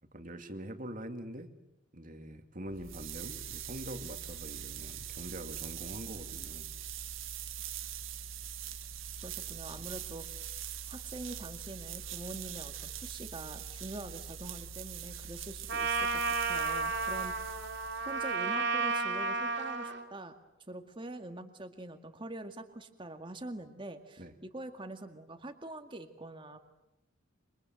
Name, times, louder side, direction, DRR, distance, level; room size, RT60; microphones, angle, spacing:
voice 1, 0.0-1.5 1.9-6.7 9.8-9.9 24.2-24.3, right 1 dB, 40° right, 6 dB, 2.5 m, -44 dB
sound 1, 2.7-18.4, right 8 dB, 85° right, 1.9 m, -43 dB
voice 2, 9.2-10.5 10.9-17.3 18.1-20.3 20.7-26.6, right 2 dB, 25° right, 5 dB, 2.1 m, -44 dB
Trumpet, 15.7-20.0, right 4 dB, 55° right, 3.5 m, -32 dB
28.0 x 25.5 x 7.9 m, 0.97 s
head